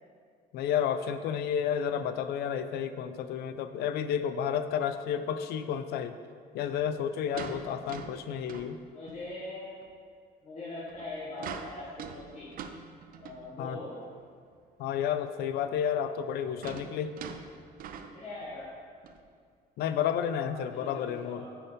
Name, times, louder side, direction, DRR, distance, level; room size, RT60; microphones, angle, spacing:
voice 1, 0.5-6.2 6.5-8.8 13.6-13.8 14.8-17.1 19.8-21.4, left 8 dB, 70° left, 11 dB, 0.4 m, -31 dB
sound 1, 4.7-4.9 6.7-9.4 9.8-9.9 10.8-13.6 14.2-14.3 14.5-14.6 15.9-18.7 19.0-19.2 19.9-20.0, right 6 dB, 60° right, 0.4 m, -44 dB
voice 2, 8.9-9.9 10.4-12.5 13.1-14.0 18.1-18.7 20.4-21.6, left 2 dB, 40° left, -8 dB, 1.4 m, -42 dB
5.2 x 4.4 x 5.1 m, 2.1 s
cardioid pair, 110°, 17 cm